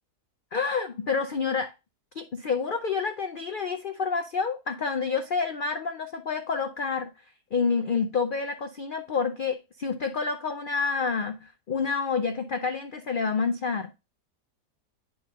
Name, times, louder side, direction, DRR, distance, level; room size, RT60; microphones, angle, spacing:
voice 1, 0.5-1.7 2.2-7.1 7.5-13.9, left 5 dB, 85° left, 0.4 m, -28 dB
10.0 x 3.7 x 3.5 m
omnidirectional pair, 1.7 m